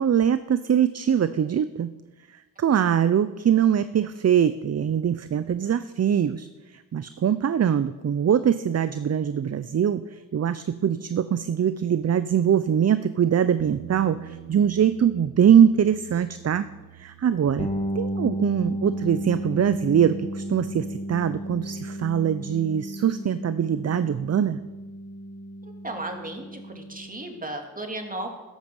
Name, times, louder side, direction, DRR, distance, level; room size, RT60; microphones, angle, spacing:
voice 1, 0.0-1.9 2.3-16.7 16.9-17.7 17.9-24.6, right 8 dB, 45° right, 14 dB, 0.5 m, -22 dB
Bass guitar, 13.6-19.8, right 11 dB, 90° right, 1.2 m, -46 dB
sound 1, 17.6-27.3, equal, 20° left, 1.5 m, -33 dB
voice 2, 25.6-28.3, right 1 dB, 20° right, 3 dB, 2.4 m, -35 dB
13.5 x 11.5 x 5.4 m, 1.2 s
cardioid pair, 70°, 38 cm